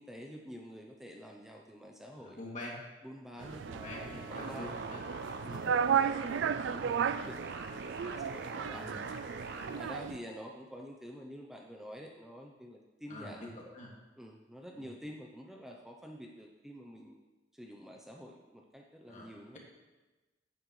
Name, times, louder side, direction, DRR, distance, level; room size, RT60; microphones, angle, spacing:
voice 1, 0.0-2.4 3.0-4.7 5.4-7.4 8.0-8.9 9.5-13.5 14.2-17.1 17.5-19.6, equal, 5° right, 0 dB, 0.7 m, -48 dB
voice 2, 2.1-2.8 3.3-5.0 6.1-6.5 8.7-9.1 13.1-13.9 14.7-14.9 19.1-19.6, left 1 dB, 45° left, -3 dB, 2.7 m, -46 dB
sound 1, 3.4-10.2, right 7 dB, 85° right, 0.3 m, -34 dB
sound 2, 3.6-9.8, right 3 dB, 65° right, 1.0 m, -43 dB
15.0 x 9.0 x 3.2 m, 1.2 s
head